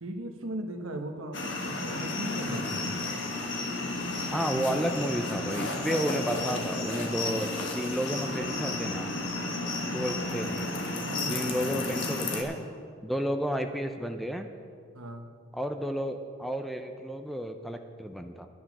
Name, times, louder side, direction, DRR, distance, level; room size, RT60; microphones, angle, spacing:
voice 1, 0.0-2.9 11.1-11.7 14.9-15.3, right 1 dB, 85° right, 5 dB, 1.2 m, -38 dB
sound 1, 1.3-12.4, left 2 dB, 60° left, 1.5 m, -32 dB
voice 2, 4.3-7.5 7.7-9.1 9.9-10.7 11.3-12.6 13.0-14.5 15.5-18.5, equal, ahead, 6 dB, 0.4 m, -32 dB
11.0 x 10.0 x 6.0 m, 2.2 s
head